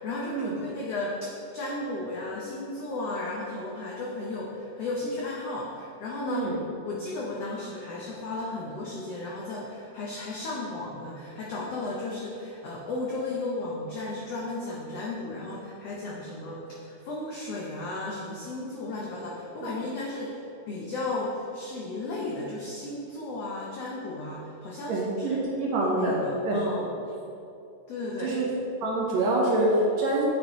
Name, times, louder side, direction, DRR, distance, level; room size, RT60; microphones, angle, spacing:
voice 1, 0.0-6.5 6.8-25.4 25.8-26.9 27.9-28.3, left 2 dB, 80° left, -4 dB, 1.4 m, -34 dB
voice 2, 24.9-26.2 26.5-26.6 28.2-28.5 28.8-30.2, right 2 dB, 65° right, -4 dB, 2.1 m, -25 dB
8.6 x 6.0 x 3.0 m, 2.7 s
omnidirectional pair, 3.8 m